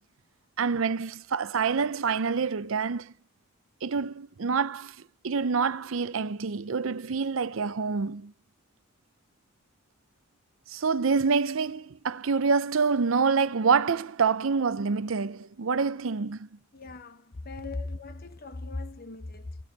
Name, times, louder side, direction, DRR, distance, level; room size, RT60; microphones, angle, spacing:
voice 1, 0.6-3.1 3.8-5.0 5.2-8.3 10.7-16.5, right 5 dB, 70° right, 0.6 m, -27 dB
voice 2, 16.7-19.6, left 2 dB, 45° left, 1.1 m, -38 dB
15.0 x 7.0 x 9.3 m
head